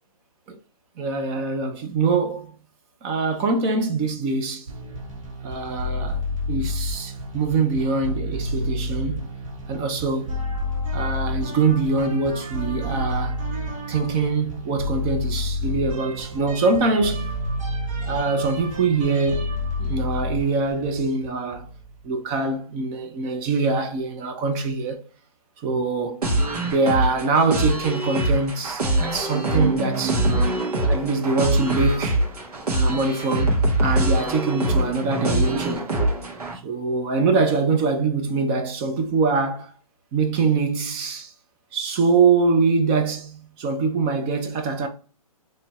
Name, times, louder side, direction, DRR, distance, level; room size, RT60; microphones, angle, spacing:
voice 1, 1.0-2.5 3.0-4.7 5.4-6.2 6.5-9.3 9.7-10.4 10.9-13.4 13.9-17.4 18.1-21.7 22.0-25.0 25.6-26.2 26.6-30.2 30.9-32.2 32.8-35.9 36.6-39.7 40.1-41.3 41.7-44.9, right 4 dB, 20° right, 0.5 m, -23 dB
sound 1, 4.7-22.0, left 1 dB, 60° right, 1.1 m, -30 dB
sound 2, 26.2-36.5, right 1 dB, 90° right, 1.4 m, -23 dB
4.2 x 3.1 x 2.3 m
hypercardioid pair, 155°, 19 cm